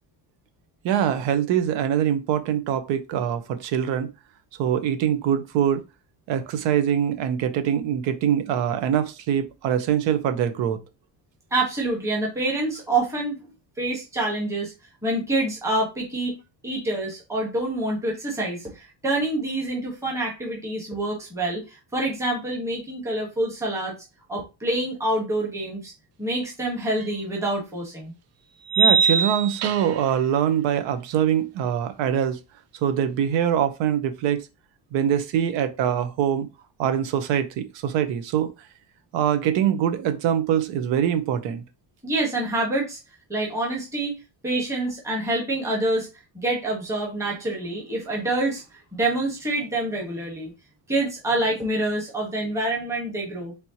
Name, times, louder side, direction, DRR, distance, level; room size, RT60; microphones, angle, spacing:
voice 1, 0.8-4.1 4.6-5.8 6.3-10.8 28.8-32.4 32.8-34.4 34.9-36.5 36.8-38.5 39.1-41.6, right 9 dB, 80° right, 0.9 m, -23 dB
voice 2, 11.5-13.5 13.8-14.7 15.0-16.4 16.6-24.0 24.3-25.9 26.2-28.1 42.0-43.0 43.3-46.1 46.3-48.6 48.9-50.5 50.9-53.5, right 2 dB, 5° right, 1.3 m, -26 dB
sound 1, 27.0-27.1 28.7-30.1, right 6 dB, 35° right, 0.5 m, -21 dB
4.3 x 3.4 x 2.9 m
cardioid pair, 155°, 44 cm